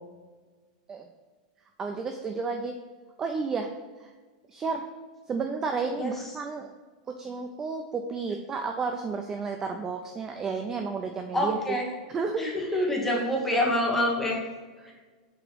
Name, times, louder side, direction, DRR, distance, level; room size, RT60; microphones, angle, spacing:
voice 1, 1.8-2.7 3.2-3.7 4.0-4.1 4.5-4.9 5.3-6.7 7.2-11.6 12.1-12.8 14.8-14.9, right 4 dB, 15° right, 4 dB, 0.3 m, -32 dB
voice 2, 11.3-11.9 12.4-14.4, left 1 dB, 5° left, -2 dB, 1.2 m, -26 dB
7.9 x 3.0 x 6.1 m, 1.4 s
supercardioid pair, 180°, 4 cm